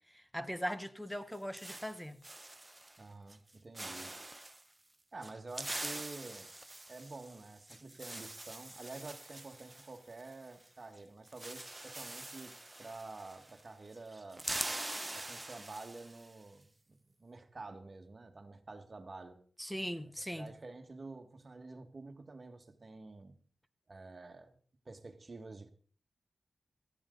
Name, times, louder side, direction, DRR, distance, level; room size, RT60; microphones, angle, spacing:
voice 1, 0.1-2.2 19.6-20.5, equal, 5° left, 1.2 m, -40 dB
sound 1, 1.1-3.0 3.3-3.5 3.8-4.6 5.2-10.7 10.9-11.0 11.3-13.7 13.9-16.3, right 2 dB, 20° right, 1.0 m, -44 dB
voice 2, 3.0-4.2 5.1-6.5 6.9-14.5 15.1-19.4 20.3-23.4 23.9-24.6 24.9-25.7, right 3 dB, 45° right, 2.0 m, -49 dB
18.5 x 14.0 x 4.1 m
cardioid pair, 65°, 0 cm